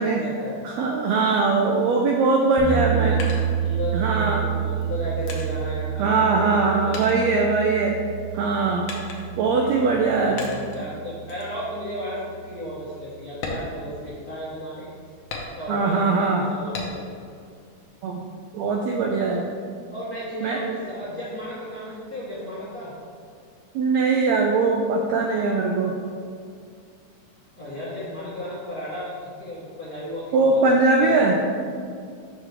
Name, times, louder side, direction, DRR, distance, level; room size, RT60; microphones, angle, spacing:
voice 1, 0.0-0.6 2.8-7.3 9.3-14.9 15.6-17.0 19.9-22.9 27.6-31.4, equal, 55° left, -11 dB, 1.0 m, -34 dB
voice 2, 0.6-3.2 3.9-4.4 6.0-8.0 8.3-8.9 9.4-10.4 15.7-16.5 18.0-18.2 18.5-19.5 20.4-20.6 23.7-25.9 30.3-31.4, right 3 dB, 85° right, 1 dB, 1.5 m, -21 dB
sound 1, 2.6-12.6, right 9 dB, 70° left, 1.9 m, -29 dB
sound 2, 3.2-4.2 4.8-6.6 6.9-8.1 8.9-9.5 10.4-10.9 11.3-11.6 12.0-12.1 12.5-12.7 13.3-14.5 15.3-16.0 16.7-17.3 17.7-18.5, left 3 dB, 90° left, 1.1 m, -37 dB
6.5 x 6.1 x 3.3 m, 2.3 s
omnidirectional pair, 3.6 m